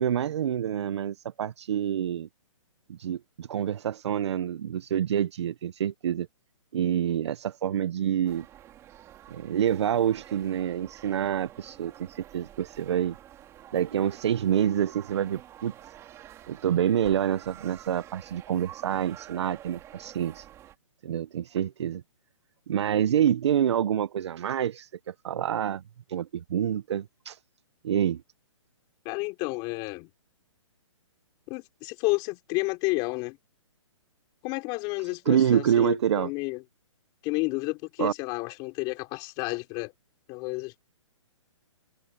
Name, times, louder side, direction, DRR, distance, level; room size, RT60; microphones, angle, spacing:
voice 1, 0.0-2.3 2.9-6.3 6.7-8.5 9.3-13.1 13.7-15.7 16.5-20.5 21.0-22.0 22.7-25.8 26.1-27.4 27.8-28.2 35.1-36.3 38.0-38.1, right 9 dB, 60° right, 1.0 m, -27 dB
sound 1, 8.2-20.7, right 12 dB, 15° right, 3.6 m, -49 dB
voice 2, 29.0-30.1 31.5-33.4 34.4-36.6 37.2-39.9 40.3-40.8, left 26 dB, 25° left, 4.3 m, -31 dB
hypercardioid pair, 155°, 16 cm